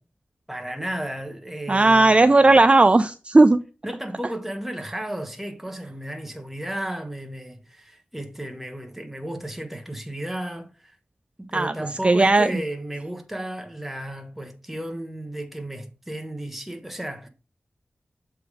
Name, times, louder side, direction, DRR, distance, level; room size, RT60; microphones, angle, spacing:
voice 1, 0.5-2.5 3.8-11.0 11.4-17.3, right 1 dB, 5° right, 1.1 m, -34 dB
voice 2, 1.7-3.6 11.5-11.7 12.0-12.5, right 2 dB, 30° right, 0.3 m, -16 dB
6.9 x 3.6 x 4.6 m
wide cardioid pair, 80°, 4 cm